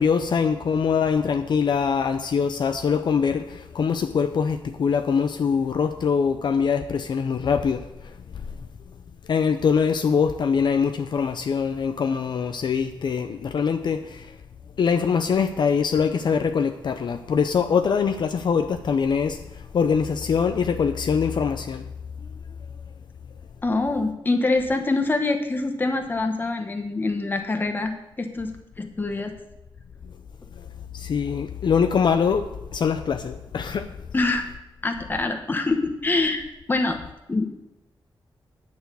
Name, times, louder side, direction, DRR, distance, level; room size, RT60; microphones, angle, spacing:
voice 1, 0.0-8.4 9.3-14.4 14.8-21.9 30.6-30.7 30.9-33.9, left 6 dB, 60° left, 7 dB, 0.6 m, -23 dB
voice 2, 23.6-27.9 28.2-29.3 34.1-34.5 34.8-37.0 37.3-37.4, left 3 dB, 25° left, 5 dB, 1.1 m, -25 dB
9.5 x 6.3 x 8.3 m, 0.92 s
wide cardioid pair, 155°, 9 cm